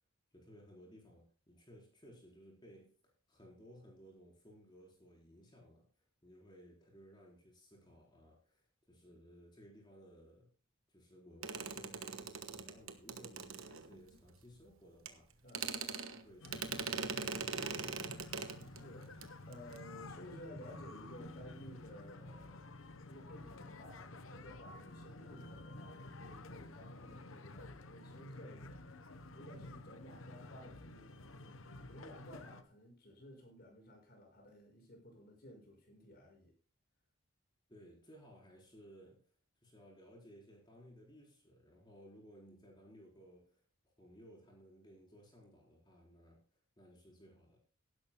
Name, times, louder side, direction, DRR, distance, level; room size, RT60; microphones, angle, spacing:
voice 1, 0.3-5.9 6.2-10.5 10.9-15.4 15.7-17.5 37.7-39.2 39.6-46.4 46.8-47.6, equal, 20° left, -2 dB, 4.2 m, -59 dB
sound 1, 11.4-14.2 15.1-15.2 15.5-18.8 19.1-19.3 19.5-19.8, right 5 dB, 75° right, 1.2 m, -41 dB
voice 2, 15.4-15.8 18.7-22.7 23.1-36.5, equal, 45° left, 1 dB, 5.8 m, -55 dB
sound 2, 16.4-32.6, left 2 dB, 70° left, 0.9 m, -51 dB
17.5 x 11.5 x 2.2 m, 0.38 s
head